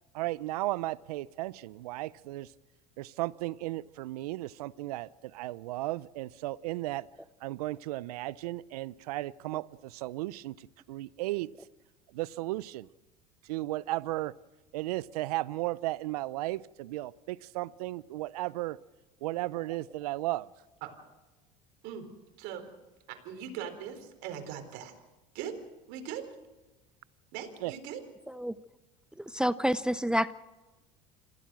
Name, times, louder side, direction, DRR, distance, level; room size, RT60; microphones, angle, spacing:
voice 1, 0.1-2.5 3.0-7.1 7.4-11.5 12.1-12.9 13.4-14.3 14.7-18.8 19.2-20.5 27.6-27.7, right 18 dB, 85° right, 20 dB, 0.6 m, -35 dB
voice 2, 23.1-24.9 25.3-25.6 25.9-26.3 27.3-28.0, right 9 dB, 70° right, 6 dB, 4.1 m, -40 dB
voice 3, 29.2-30.3, equal, 5° right, 15 dB, 0.6 m, -28 dB
27.0 x 16.0 x 6.2 m, 1.1 s
supercardioid pair, 95°, 19 cm